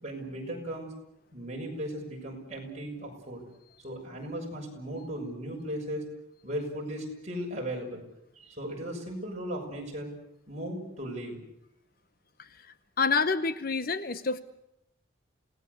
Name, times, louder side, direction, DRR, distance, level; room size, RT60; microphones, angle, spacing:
voice 1, 0.0-0.9 1.3-3.4 3.8-6.0 6.4-8.0 8.3-10.1 10.5-11.4, right 1 dB, 35° right, -1 dB, 6.5 m, -37 dB
voice 2, 13.0-14.4, left 4 dB, 45° left, 12 dB, 0.9 m, -27 dB
28.0 x 18.0 x 8.2 m, 0.81 s
head